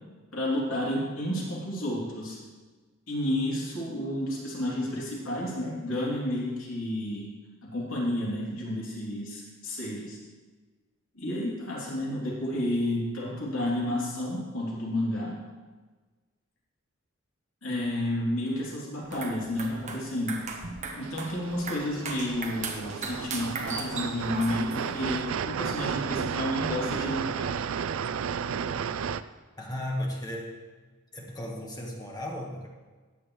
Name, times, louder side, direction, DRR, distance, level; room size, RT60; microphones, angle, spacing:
voice 1, 0.3-2.4 3.1-7.3 7.6-10.2 11.1-15.4 17.6-20.4 21.0-27.5, left 1 dB, 75° left, -5 dB, 3.1 m, -31 dB
sound 1, 19.0-25.0, right 3 dB, 35° right, 1.3 m, -38 dB
sound 2, 21.0-29.2, right 7 dB, 75° right, 0.4 m, -33 dB
voice 2, 29.6-30.6 31.1-32.7, left 1 dB, 20° left, -1 dB, 1.5 m, -35 dB
14.5 x 9.7 x 3.2 m, 1.3 s
head